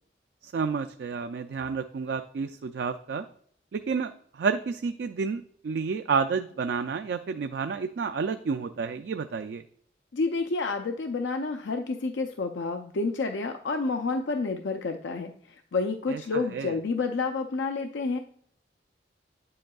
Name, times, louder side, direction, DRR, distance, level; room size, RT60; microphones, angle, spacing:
voice 1, 0.4-3.3 3.7-9.6 16.1-16.7, right 5 dB, 65° right, 8 dB, 0.3 m, -30 dB
voice 2, 10.1-18.2, left 3 dB, 90° left, 5 dB, 0.5 m, -29 dB
9.4 x 7.7 x 2.3 m, 0.62 s
head